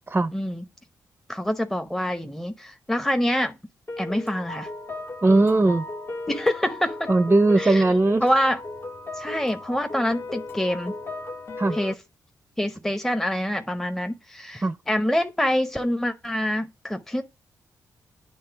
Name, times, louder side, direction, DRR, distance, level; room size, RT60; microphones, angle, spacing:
voice 1, 0.3-0.6 1.3-3.5 4.0-4.7 6.3-7.1 7.6-7.8 8.2-8.6 9.2-10.9 11.7-11.9 12.6-17.2, equal, 5° left, 0.8 m, -26 dB
sound 1, 3.9-11.9, left 2 dB, 35° left, 0.9 m, -36 dB
voice 2, 5.2-5.8 7.1-8.3 11.6-11.8 14.6-14.8, right 2 dB, 25° right, 0.5 m, -19 dB
8.7 x 3.3 x 5.7 m
supercardioid pair, 55°, 7 cm